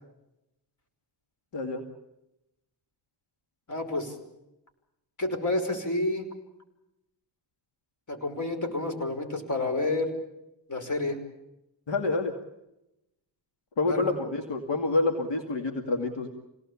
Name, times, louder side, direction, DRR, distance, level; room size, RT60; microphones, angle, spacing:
voice 1, 3.7-4.1 5.2-6.3 8.1-10.1 10.7-11.2 13.9-14.1, left 2 dB, 40° left, 5 dB, 5.5 m, -29 dB
voice 2, 11.9-12.3 13.8-16.3, left 3 dB, 75° left, 3 dB, 2.5 m, -27 dB
26.5 x 18.5 x 8.6 m, 0.90 s
cardioid pair, 85°, 44 cm